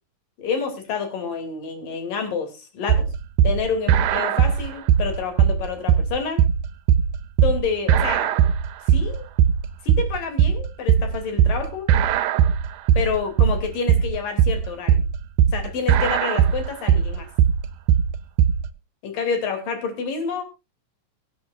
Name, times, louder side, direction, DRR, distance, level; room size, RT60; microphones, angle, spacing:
voice 1, 0.4-3.1 3.4-6.4 7.4-8.3 8.9-9.3 9.8-11.9 13.0-15.0 15.5-17.3 19.0-20.4, left 5 dB, 80° left, 5 dB, 4.5 m, -28 dB
sound 1, 2.9-18.7, right 8 dB, 75° right, 2.2 m, -19 dB
23.5 x 8.5 x 2.5 m, 0.26 s
omnidirectional pair, 3.8 m